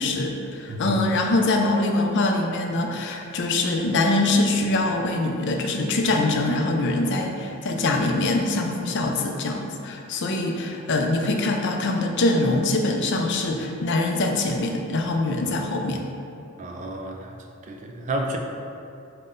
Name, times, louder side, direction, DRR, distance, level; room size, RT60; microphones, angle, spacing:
voice 1, 0.0-16.0, left 2 dB, 55° left, 3 dB, 0.4 m, -23 dB
voice 2, 16.6-17.3 17.6-18.4, right 1 dB, 35° right, 2 dB, 0.3 m, -31 dB
5.4 x 2.1 x 3.8 m, 2.6 s
head